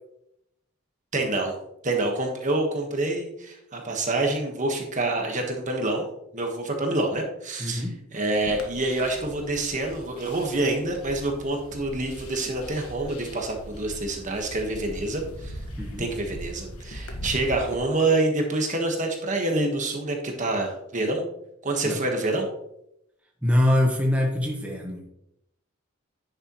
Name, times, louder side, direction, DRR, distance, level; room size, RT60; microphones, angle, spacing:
voice 1, 1.1-1.5 1.8-6.1 6.3-15.6 16.0-21.2 21.6-22.5, right 2 dB, 35° right, 2 dB, 1.3 m, -27 dB
voice 2, 7.6-7.9 15.8-16.1 21.8-22.0 23.4-25.0, left 1 dB, 5° right, -1 dB, 1.2 m, -23 dB
sound 1, 8.3-17.8, equal, 80° left, 1.4 m, -40 dB
10.5 x 6.6 x 3.1 m, 0.79 s
head